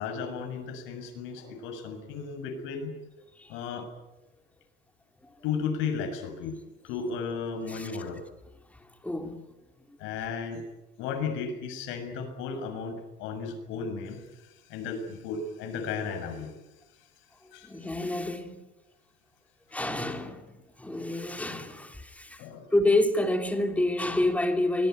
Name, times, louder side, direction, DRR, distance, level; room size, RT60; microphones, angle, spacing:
voice 1, 0.0-2.9 3.5-3.9 5.4-6.6 6.8-8.2 10.0-10.6 11.0-14.2 14.7-16.5 17.5-17.7 22.4-22.7, left 5 dB, 70° left, 6.8 m, -34 dB
voice 2, 8.7-9.4 9.9-10.0 17.6-18.6 19.7-20.5 20.8-22.5 22.7-24.9, left 1 dB, 5° left, 2.9 m, -28 dB
24.5 x 21.0 x 9.4 m
cardioid pair, 135°, 20 cm